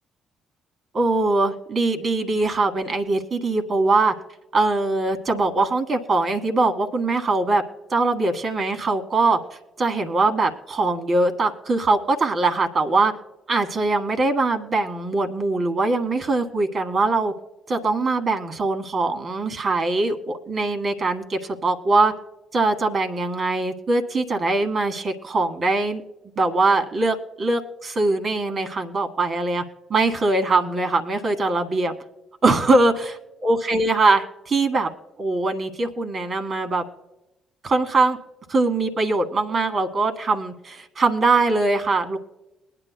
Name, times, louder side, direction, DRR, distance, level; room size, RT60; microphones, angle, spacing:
voice 1, 0.9-4.1 4.5-7.6 7.9-9.4 9.8-13.1 13.5-17.3 17.7-22.1 22.5-26.0 26.4-29.6 29.9-31.9 32.4-33.1 33.4-34.9 35.2-36.8 37.6-38.2 38.5-42.2, right 3 dB, 45° right, 7 dB, 1.8 m, -22 dB
22.5 x 10.0 x 2.2 m, 0.97 s
hypercardioid pair, 50°, 0 cm